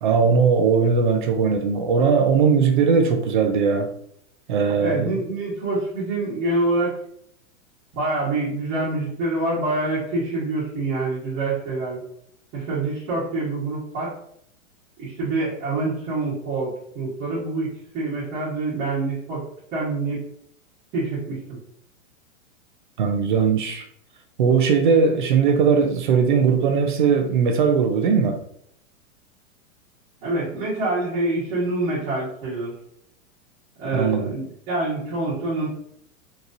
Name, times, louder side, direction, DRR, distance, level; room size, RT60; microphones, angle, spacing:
voice 1, 0.0-3.9 4.5-5.1 23.0-23.8 24.4-28.4 33.9-34.4, right 5 dB, 40° right, 6 dB, 0.4 m, -19 dB
voice 2, 4.8-6.9 7.9-12.0 12.5-14.1 15.0-17.7 17.9-19.4 19.7-20.2 20.9-21.6 30.2-32.7 33.8-35.7, right 2 dB, 20° right, -10 dB, 1.1 m, -26 dB
3.9 x 2.9 x 2.6 m, 0.68 s
supercardioid pair, 170°, 40 cm